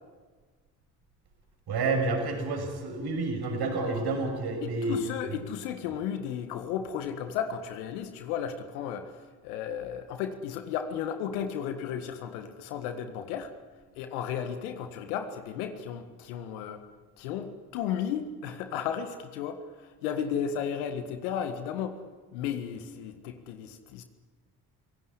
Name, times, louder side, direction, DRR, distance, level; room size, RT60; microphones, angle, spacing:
voice 1, 1.7-5.0, right 3 dB, 60° right, 4 dB, 6.5 m, -29 dB
voice 2, 4.6-13.5 13.9-16.8 17.2-19.6 20.0-22.0 22.3-24.0, left 8 dB, 80° left, 8 dB, 1.8 m, -34 dB
26.5 x 17.5 x 9.7 m, 1.4 s
hypercardioid pair, 45°, 44 cm